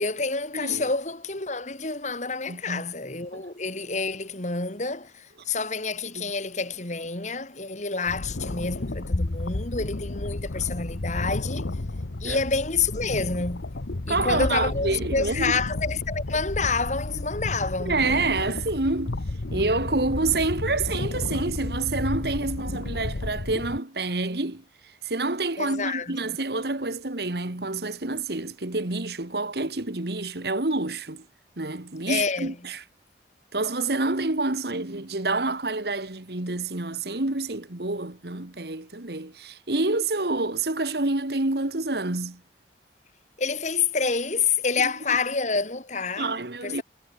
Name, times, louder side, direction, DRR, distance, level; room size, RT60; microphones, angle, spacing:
voice 1, 0.0-11.7 12.2-13.7 14.1-18.0 25.6-26.2 32.1-32.5 43.4-46.3 46.6-46.8, left 4 dB, 40° left, 3.0 m, -28 dB
voice 2, 0.5-0.9 2.5-2.9 3.3-3.4 6.2-6.3 12.2-12.4 14.1-15.5 17.8-19.2 19.5-31.3 31.6-32.8 33.5-42.4 44.8-45.2 46.2-46.8, right 2 dB, 65° right, 1.9 m, -28 dB
sound 1, 8.1-23.8, left 2 dB, 85° left, 1.1 m, -32 dB
head